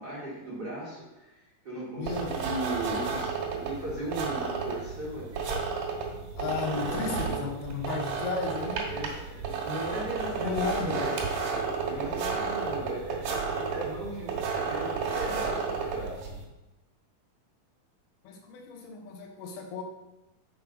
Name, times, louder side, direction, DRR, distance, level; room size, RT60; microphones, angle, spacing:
voice 1, 0.0-5.6 6.4-7.2 8.7-11.1 11.8-16.3, right 1 dB, 45° right, -7 dB, 1.4 m, -37 dB
voice 2, 2.0-2.4 6.4-8.9 10.4-11.1 18.2-19.8, left 4 dB, 90° left, 3 dB, 3.0 m, -34 dB
sound 1, 2.1-16.4, right 5 dB, 65° right, 2.9 m, -32 dB
7.2 x 4.8 x 5.1 m, 0.99 s
omnidirectional pair, 4.3 m